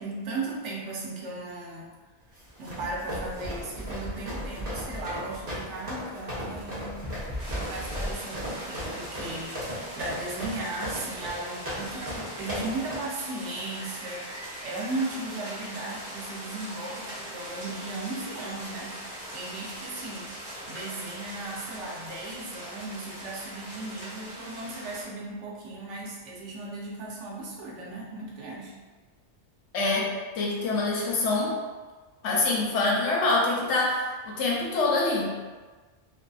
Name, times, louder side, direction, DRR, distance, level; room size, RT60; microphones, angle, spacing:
voice 1, 0.0-1.9 2.6-7.1 7.5-9.6 9.9-14.3 14.6-20.3 20.7-28.8, right 2 dB, 85° right, -3 dB, 1.0 m, -36 dB
sound 1, 2.4-12.9, equal, 55° right, 1.1 m, -37 dB
sound 2, 2.5-8.5, left 1 dB, 30° left, 0.3 m, -39 dB
sound 3, 7.4-25.0, right 1 dB, 25° right, 0.9 m, -41 dB
voice 2, 29.7-30.1 30.4-31.6 32.2-35.3, left 2 dB, 80° left, -3 dB, 0.9 m, -25 dB
2.6 x 2.5 x 2.3 m, 1.3 s
omnidirectional pair, 1.2 m